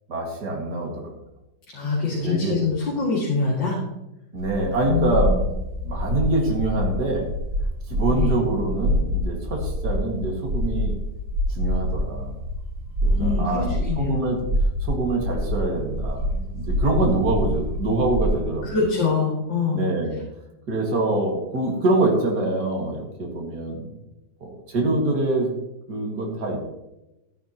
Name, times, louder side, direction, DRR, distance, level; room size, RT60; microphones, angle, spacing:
voice 1, 0.1-1.2 2.2-2.6 4.3-5.3 5.8-7.3 7.9-10.9 11.5-12.3 13.0-14.4 14.8-16.3 16.5-18.7 19.7-20.2 20.7-23.9 24.4-25.5 25.9-26.6, right 2 dB, 60° right, -1 dB, 2.7 m, -25 dB
voice 2, 1.7-3.8 4.9-5.4 8.1-8.3 13.1-14.1 18.6-19.8, left 4 dB, 75° left, -6 dB, 3.1 m, -24 dB
sound 1, 4.4-18.4, equal, 80° right, 2.2 m, -26 dB
13.0 x 11.0 x 3.0 m, 0.94 s
omnidirectional pair, 2.0 m